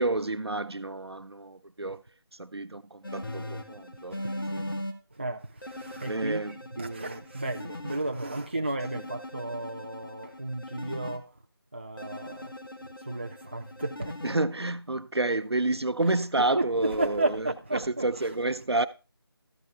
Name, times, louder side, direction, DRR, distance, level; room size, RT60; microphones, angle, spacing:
voice 1, 0.0-2.0 2.4-4.2 4.5-4.6 6.1-6.5 14.2-17.4 17.7-18.9, right 2 dB, 85° right, 0.7 m, -29 dB
sound 1, 3.0-4.9 5.6-8.0 8.8-11.2 12.0-14.4, left 1 dB, 60° left, 1.6 m, -40 dB
voice 2, 5.1-11.3 11.7-12.6 13.0-14.2 16.0-18.3, right 2 dB, 25° right, 0.4 m, -33 dB
13.5 x 6.8 x 3.5 m
figure-of-eight pair, 165°, 13 cm